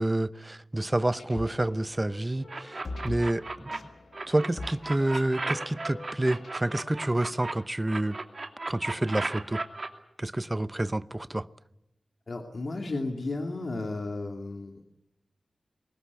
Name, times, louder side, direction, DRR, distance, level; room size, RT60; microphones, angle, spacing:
voice 1, 0.0-3.7 4.3-8.2 8.7-9.6 10.2-11.5, right 1 dB, 20° right, 14 dB, 0.8 m, -28 dB
sound 1, 0.9-6.9, left 2 dB, 80° left, 1.6 m, -43 dB
sound 2, 2.5-3.8 4.1-7.5 7.9-9.9, right 3 dB, 50° right, 2.7 m, -35 dB
voice 2, 12.3-14.7, left 2 dB, 60° left, 3 dB, 2.6 m, -33 dB
23.5 x 20.0 x 8.5 m, 0.86 s
wide cardioid pair, 70°, 0 cm